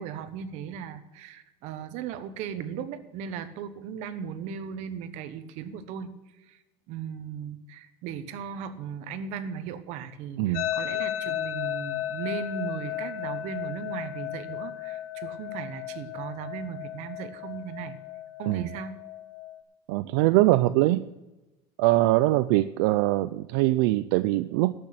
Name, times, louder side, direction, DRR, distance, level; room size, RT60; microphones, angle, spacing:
voice 1, 0.0-6.1 6.5-6.6 6.9-18.0 18.4-19.0, right 7 dB, 65° right, 11 dB, 1.2 m, -37 dB
voice 2, 10.4-10.7 18.5-18.7 19.9-21.1 21.8-24.7, right 17 dB, 85° right, 13 dB, 0.4 m, -22 dB
sound 1, 10.5-19.6, left 12 dB, 75° left, 1.2 m, -35 dB
12.5 x 6.2 x 8.6 m, 1.0 s
cardioid pair, 150°, 13 cm